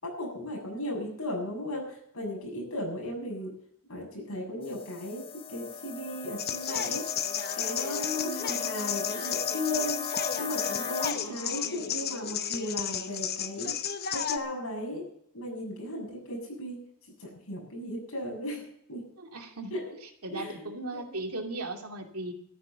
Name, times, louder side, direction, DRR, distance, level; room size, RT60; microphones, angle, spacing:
voice 1, 0.0-3.5 3.9-5.2 5.5-7.0 7.5-13.8 14.1-15.0 15.3-16.8 17.2-19.1 19.7-19.8 20.3-21.2, left 1 dB, 75° left, 0 dB, 6.8 m, -36 dB
sound 1, 4.6-11.1, left 5 dB, 25° left, 0.5 m, -36 dB
sound 2, 6.4-14.4, left 9 dB, 45° left, 0.9 m, -33 dB
voice 2, 8.2-8.7 11.2-11.8 19.2-19.8 20.2-22.3, right 2 dB, 85° right, 2 dB, 2.5 m, -38 dB
13.5 x 10.5 x 6.9 m, 0.70 s
head